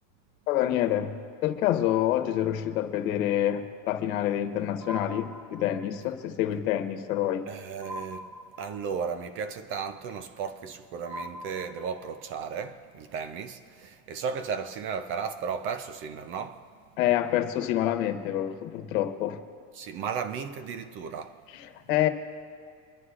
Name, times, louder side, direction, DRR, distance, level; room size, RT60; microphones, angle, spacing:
voice 1, 0.5-7.5 17.0-19.4 21.5-22.1, left 12 dB, 90° left, 1.2 m, -27 dB
sound 1, 4.8-6.0 7.8-9.1 11.0-12.3, equal, 10° right, 0.8 m, -41 dB
voice 2, 7.5-8.3 8.6-16.7 19.7-21.4, right 6 dB, 35° right, 0.4 m, -35 dB
26.5 x 11.0 x 2.4 m
cardioid pair, 170°, 40 cm